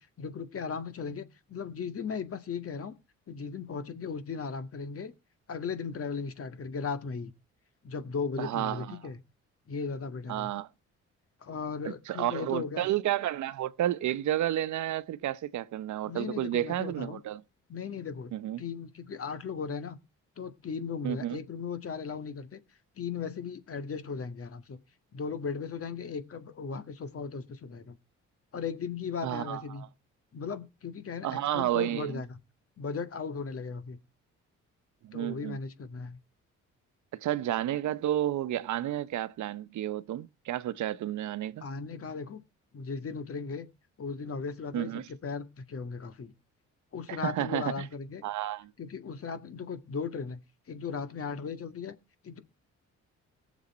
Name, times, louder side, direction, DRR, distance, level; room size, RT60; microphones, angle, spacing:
voice 1, 0.0-3.0 3.3-5.1 5.5-7.3 7.8-9.2 9.7-10.5 11.4-12.9 16.1-17.2 17.7-20.0 20.4-22.6 23.0-24.8 25.1-28.0 28.5-29.8 30.3-32.4 32.8-34.0 35.1-36.2 41.6-42.4 42.7-43.7 44.0-46.3 46.9-48.2 48.8-50.4 50.7-51.9 52.2-52.4, left 5 dB, 50° left, 2.0 m, -37 dB
voice 2, 8.4-9.0 10.3-10.7 12.1-17.4 18.3-18.6 21.0-21.4 29.2-29.9 31.2-32.2 35.0-35.6 37.1-41.7 44.7-45.0 47.1-47.8 48.2-48.7, right 12 dB, 70° right, 0.9 m, -31 dB
18.5 x 7.3 x 4.3 m
cardioid pair, 90°, 30 cm